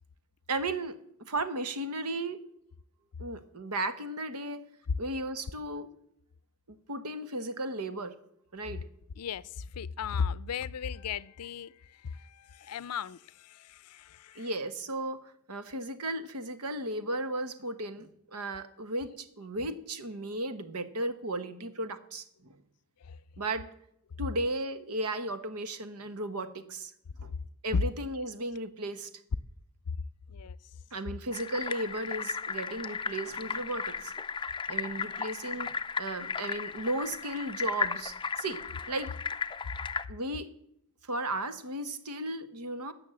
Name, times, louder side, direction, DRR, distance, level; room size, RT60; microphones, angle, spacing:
voice 1, 0.5-2.4 3.2-4.6 5.0-5.9 6.7-8.1 8.5-8.8 14.3-22.6 23.4-23.7 24.2-26.9 27.2-27.3 27.6-29.1 30.9-34.1 34.7-38.6 38.9-39.1 40.1-40.5 41.0-42.9, right 2 dB, 90° right, 1.2 m, -35 dB
voice 2, 9.2-14.5 23.0-23.2 30.3-30.6 35.0-35.1, left 7 dB, 90° left, 0.5 m, -37 dB
sound 1, 31.3-40.1, left 5 dB, 20° left, 0.4 m, -35 dB
16.5 x 6.4 x 7.5 m
head